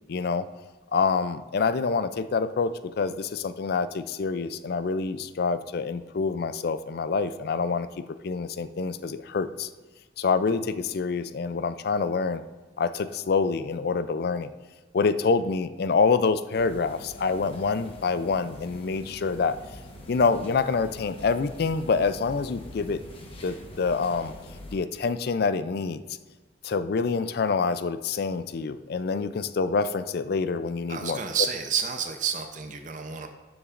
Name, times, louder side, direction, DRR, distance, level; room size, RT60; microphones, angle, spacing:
voice 1, 0.1-0.4 0.9-7.9 8.2-9.7 10.2-12.4 12.8-14.5 14.9-19.6 20.1-23.0 23.4-24.3 24.7-26.0 26.6-31.2, left 4 dB, 55° left, 12 dB, 0.4 m, -26 dB
sound 1, 16.5-24.8, left 1 dB, 30° left, 1.1 m, -44 dB
voice 2, 30.9-33.3, right 7 dB, 40° right, 6 dB, 0.6 m, -30 dB
12.0 x 7.1 x 2.5 m, 1.3 s
head